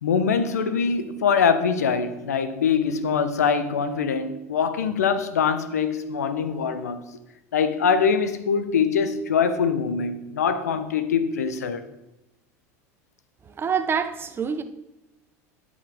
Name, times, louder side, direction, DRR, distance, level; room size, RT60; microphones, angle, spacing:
voice 1, 0.0-7.0 7.5-11.8, left 6 dB, 90° left, 0.8 m, -23 dB
voice 2, 13.6-14.6, right 6 dB, 25° right, 0.8 m, -26 dB
12.5 x 5.2 x 3.6 m
hypercardioid pair, 85°, 8 cm